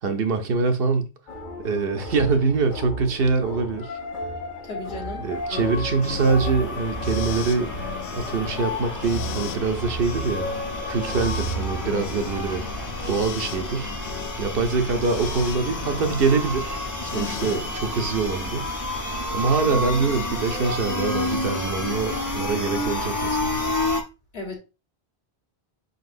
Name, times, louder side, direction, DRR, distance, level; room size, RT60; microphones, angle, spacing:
voice 1, 0.0-1.1 1.6-4.0 5.2-7.7 8.1-10.5 10.9-12.6 13.1-13.9 14.4-18.7 19.3-23.6, right 4 dB, 65° right, 0.8 m, -24 dB
sound 1, 1.3-13.1, equal, 50° left, 0.9 m, -33 dB
voice 2, 4.6-5.7 12.0-12.3 17.1-17.5 24.3-24.6, left 2 dB, 65° left, 1.6 m, -36 dB
sound 2, 5.3-24.0, left 1 dB, 20° left, 0.6 m, -30 dB
sound 3, 5.7-17.9, left 9 dB, 85° left, 0.9 m, -38 dB
5.3 x 4.0 x 2.5 m
omnidirectional pair, 1.1 m